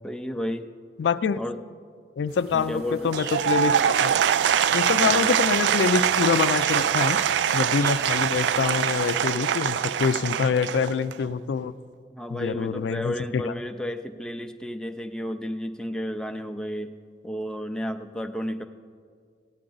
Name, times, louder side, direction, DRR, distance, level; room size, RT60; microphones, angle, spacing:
voice 1, 0.0-0.7 1.4-1.6 2.5-3.1 4.9-5.4 12.1-16.9 17.2-18.6, equal, 5° left, 6 dB, 0.4 m, -32 dB
voice 2, 1.0-1.4 2.2-3.7 4.0-4.1 4.7-7.2 7.5-11.7 12.3-13.5, left 6 dB, 80° left, 14 dB, 0.3 m, -25 dB
sound 1, 2.3-8.8, right 4 dB, 60° right, 0.8 m, -44 dB
Applause / Crowd, 3.0-11.3, right 9 dB, 80° right, 0.3 m, -23 dB
15.5 x 9.7 x 3.9 m, 2.1 s
head